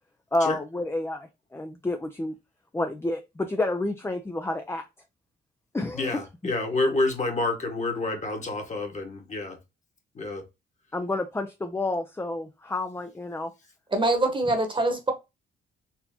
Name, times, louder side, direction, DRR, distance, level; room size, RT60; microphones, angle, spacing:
voice 1, 0.3-2.3 2.7-4.8 5.7-6.2 10.9-13.5, left 2 dB, 10° left, 0.5 m, -29 dB
voice 2, 5.9-9.6 10.1-10.4, left 2 dB, 35° left, 1.6 m, -28 dB
voice 3, 13.9-15.1, right 2 dB, 25° right, 1.2 m, -24 dB
4.3 x 2.8 x 2.8 m
cardioid pair, 90°, 20 cm